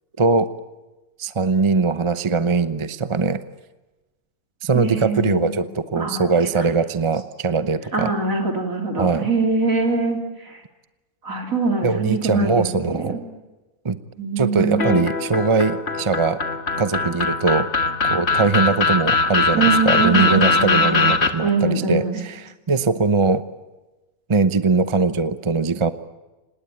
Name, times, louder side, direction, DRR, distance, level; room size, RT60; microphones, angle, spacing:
voice 1, 0.2-0.5 1.2-3.4 4.6-8.1 9.0-9.3 11.8-13.2 13.8-14.0 14.4-16.4 16.8-17.7 18.0-23.4 24.3-25.9, right 4 dB, 25° right, 12 dB, 0.7 m, -21 dB
voice 2, 4.7-5.6 6.0-6.2 6.6-6.7 7.9-10.6 11.2-13.2 14.2-15.0 19.5-21.1 21.4-22.2, right 3 dB, 65° right, 3 dB, 3.9 m, -23 dB
sound 1, 14.8-21.3, left 3 dB, 45° left, 1.9 m, -20 dB
26.0 x 20.0 x 8.6 m, 1.1 s
omnidirectional pair, 1.6 m